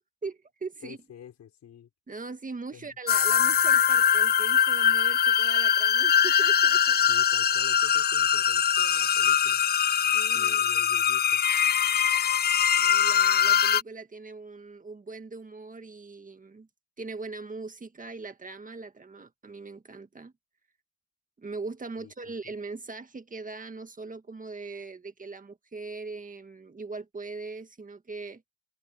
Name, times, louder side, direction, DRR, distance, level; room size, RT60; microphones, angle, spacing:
voice 1, 0.2-1.0 2.1-7.0 10.1-10.7 12.8-16.7 17.0-20.3 21.4-28.4, right 3 dB, 25° right, 1.8 m, -40 dB
voice 2, 0.8-1.9 2.7-2.9 7.1-9.6 10.3-11.4 22.0-22.5, left 9 dB, 65° left, 5.4 m, -48 dB
sound 1, 3.1-13.8, left 8 dB, 35° left, 0.5 m, -22 dB
open air
cardioid pair, 90°, 30 cm